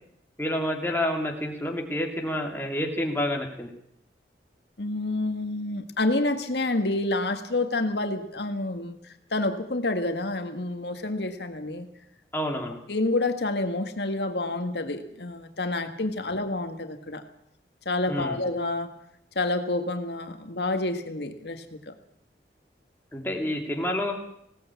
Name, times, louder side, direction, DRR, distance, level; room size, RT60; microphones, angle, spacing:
voice 1, 0.4-3.7 12.3-12.8 18.1-18.4 23.1-24.1, left 1 dB, 10° left, 1 dB, 2.7 m, -28 dB
voice 2, 4.8-11.9 12.9-17.2 17.8-18.9 19.3-21.9, left 2 dB, 75° left, 7 dB, 1.8 m, -28 dB
20.0 x 17.5 x 8.4 m, 0.76 s
head